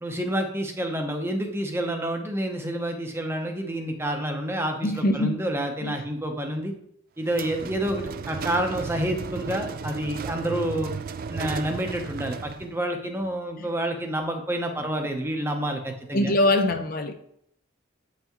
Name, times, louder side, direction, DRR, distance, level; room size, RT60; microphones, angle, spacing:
voice 1, 0.0-6.7 7.2-10.9 11.3-16.3, right 1 dB, 10° right, 3 dB, 0.8 m, -28 dB
voice 2, 4.8-5.4 5.8-5.9 13.6-13.7 16.1-17.1, left 1 dB, 45° left, 7 dB, 0.5 m, -23 dB
sound 1, 7.3-12.7, right 5 dB, 45° right, 0.3 m, -34 dB
8.2 x 5.7 x 3.0 m, 0.71 s
head